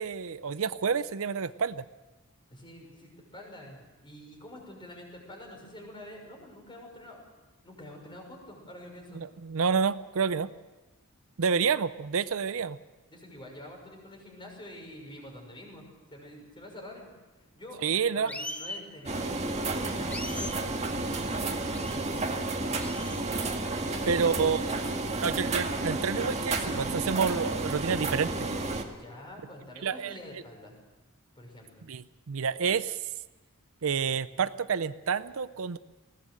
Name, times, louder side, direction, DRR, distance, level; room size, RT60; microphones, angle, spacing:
voice 1, 0.0-1.8 9.1-10.5 11.4-12.8 17.8-18.3 24.1-24.6 25.2-28.5 29.8-30.2 31.9-33.0 33.8-35.8, right 6 dB, 70° right, 15 dB, 0.6 m, -29 dB
voice 2, 2.5-7.2 7.6-9.2 13.1-17.1 17.4-17.8 18.1-22.2 23.8-25.3 28.9-30.8 31.4-31.9, left 1 dB, 20° left, 1 dB, 6.1 m, -47 dB
sound 1, 18.3-18.8 20.1-20.6 21.7-22.0 22.8-23.2, left 2 dB, 5° left, 1.2 m, -39 dB
sound 2, 19.1-28.8, right 2 dB, 30° right, 1.9 m, -31 dB
20.0 x 18.0 x 7.7 m, 1.1 s
head